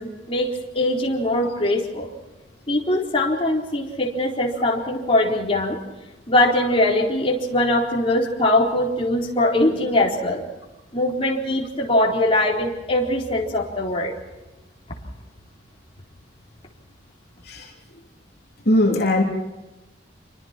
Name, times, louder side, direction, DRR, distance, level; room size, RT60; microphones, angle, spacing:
voice 1, 0.0-2.1 2.7-5.8 6.3-10.5 10.9-14.1 14.9-15.0, left 1 dB, 30° left, -2 dB, 4.1 m, -21 dB
voice 2, 18.7-19.2, left 1 dB, 55° left, -1 dB, 3.3 m, -18 dB
28.5 x 24.0 x 4.5 m, 1.1 s
head